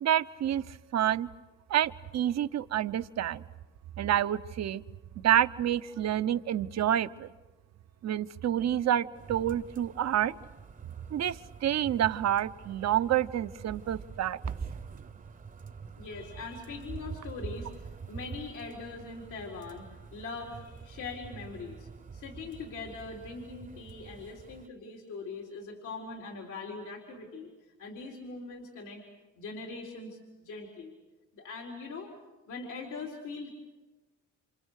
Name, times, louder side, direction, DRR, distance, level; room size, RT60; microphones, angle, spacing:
voice 1, 0.0-1.3 1.7-3.4 4.0-4.8 5.2-7.3 8.0-10.3 11.1-14.4, right 11 dB, 60° right, 12 dB, 0.9 m, -28 dB
sound 1, 9.1-24.7, right 5 dB, 25° right, 0.9 m, -45 dB
voice 2, 16.0-19.8 20.1-29.0 29.4-30.9 31.3-32.1 32.5-33.5, left 4 dB, 85° left, 0 dB, 4.1 m, -42 dB
28.5 x 28.0 x 6.5 m, 1.2 s
cardioid pair, 90°, 30 cm